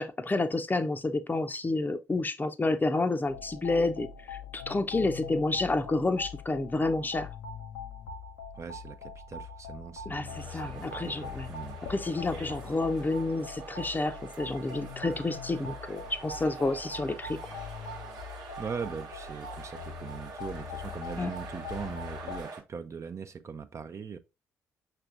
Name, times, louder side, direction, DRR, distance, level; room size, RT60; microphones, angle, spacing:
voice 1, 0.0-7.3 10.1-11.5 11.9-17.4 21.2-21.3, left 2 dB, 20° left, 0.6 m, -29 dB
sound 1, 3.2-22.4, left 5 dB, 75° left, 0.6 m, -42 dB
voice 2, 8.6-11.8 18.6-24.2, right 6 dB, 35° right, 0.5 m, -40 dB
sound 2, 10.2-22.6, right 4 dB, 55° right, 1.1 m, -45 dB
5.8 x 3.3 x 2.5 m
figure-of-eight pair, 40°, 8 cm